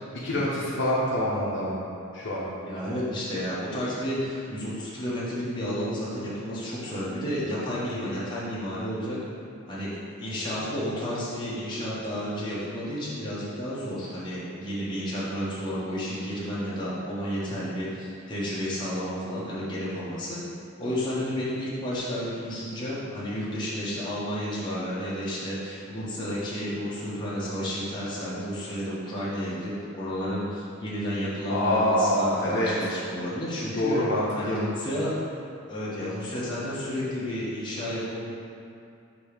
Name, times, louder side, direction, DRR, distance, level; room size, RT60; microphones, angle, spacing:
voice 1, 0.2-1.8 2.1-2.5 31.5-32.7 33.8-34.6, left 1 dB, 55° left, -7 dB, 0.9 m, -25 dB
voice 2, 2.6-9.2 9.7-9.9 10.2-20.4 20.8-34.0 34.3-35.2 35.7-38.3, equal, 20° left, -9 dB, 1.3 m, -31 dB
6.6 x 3.1 x 5.0 m, 2.6 s
head